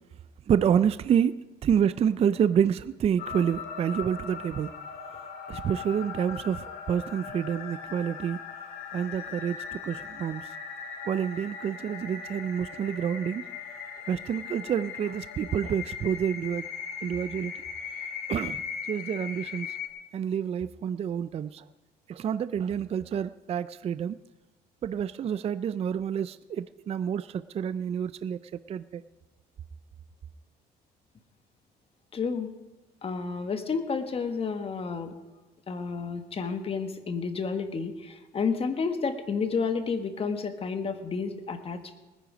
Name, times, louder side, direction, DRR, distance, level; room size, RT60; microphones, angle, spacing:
voice 1, 0.5-4.7 5.5-8.4 8.9-10.5 11.1-13.5 14.1-16.6 17.0-17.5 18.3-18.6 18.9-19.7 20.1-21.6 22.1-24.2 24.8-29.0, right 8 dB, 35° right, 0.4 m, -28 dB
sound 1, 3.2-19.9, left 6 dB, 70° left, 2.1 m, -39 dB
voice 2, 32.1-32.5 33.0-35.1 35.7-41.9, left 5 dB, 35° left, 1.5 m, -31 dB
20.0 x 10.0 x 5.1 m
cardioid pair, 110°, 17 cm